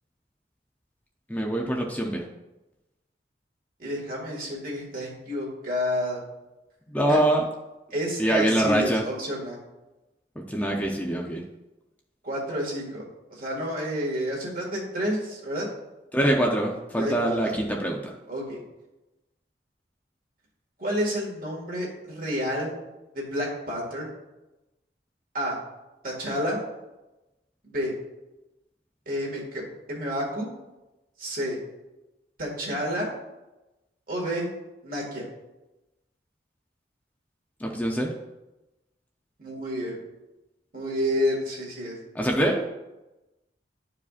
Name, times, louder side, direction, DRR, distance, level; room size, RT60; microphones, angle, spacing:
voice 1, 1.3-2.3 6.9-7.4 8.2-9.1 10.5-11.4 16.1-18.0 37.6-38.1 42.1-42.6, right 1 dB, 10° left, 0 dB, 0.6 m, -24 dB
voice 2, 3.8-6.2 7.1-7.2 7.9-9.6 12.2-13.0 13.3-15.7 16.9-17.5 18.3-18.6 20.8-22.7 23.1-24.1 25.3-25.6 26.0-26.6 27.6-27.9 29.1-30.5 31.2-31.6 32.4-33.1 34.1-34.5 34.8-35.2 39.4-40.0 40.7-41.9, equal, 55° right, -2 dB, 1.9 m, -30 dB
11.0 x 4.8 x 2.4 m, 1.0 s
head